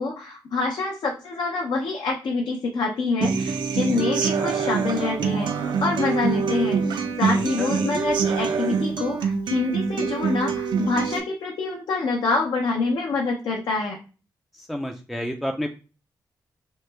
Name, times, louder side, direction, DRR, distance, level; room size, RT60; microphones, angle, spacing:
voice 1, 0.0-14.0, left 3 dB, 70° left, 0 dB, 0.7 m, -26 dB
Human voice / Acoustic guitar, 3.2-11.2, right 5 dB, 75° right, 0.5 m, -25 dB
voice 2, 7.6-7.9 14.6-15.7, equal, ahead, 3 dB, 0.4 m, -30 dB
3.0 x 2.1 x 3.3 m, 0.35 s
cardioid pair, 90°, 8 cm